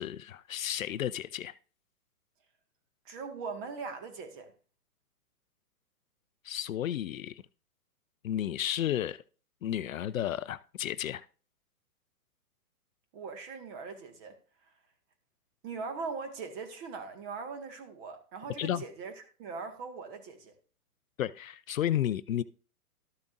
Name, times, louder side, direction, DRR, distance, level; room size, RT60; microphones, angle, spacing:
voice 1, 0.0-1.5 6.4-7.4 8.2-9.2 9.6-11.2 18.6-18.8 21.2-22.4, left 11 dB, 60° left, 0.6 m, -32 dB
voice 2, 3.1-4.5 13.1-14.4 15.6-19.1 19.4-20.5, right 5 dB, 35° right, 1.8 m, -40 dB
13.0 x 6.8 x 2.6 m
hypercardioid pair, 125°, 46 cm